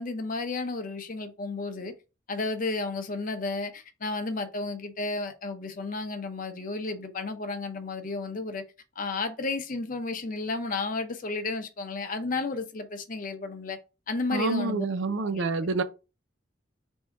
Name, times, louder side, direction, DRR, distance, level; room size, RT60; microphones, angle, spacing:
voice 1, 0.0-1.9 2.3-8.6 9.0-13.8 14.1-14.9 15.2-15.7, left 3 dB, 45° left, 0.7 m, -32 dB
voice 2, 14.3-15.8, right 3 dB, 75° right, 0.5 m, -28 dB
3.5 x 2.7 x 4.3 m
head